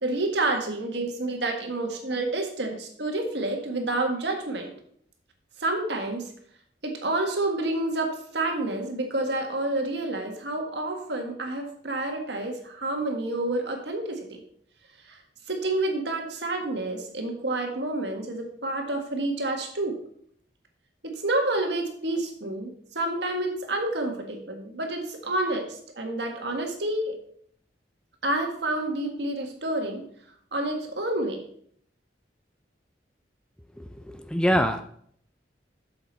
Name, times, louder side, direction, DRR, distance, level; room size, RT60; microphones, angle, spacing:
voice 1, 0.0-4.7 5.6-6.3 6.8-14.4 15.1-15.2 15.5-20.0 21.0-27.2 28.2-30.1 30.5-31.4, right 2 dB, 70° right, 3 dB, 1.7 m, -29 dB
voice 2, 33.8-34.8, equal, 5° left, 7 dB, 0.4 m, -25 dB
8.0 x 7.0 x 4.2 m, 0.62 s
head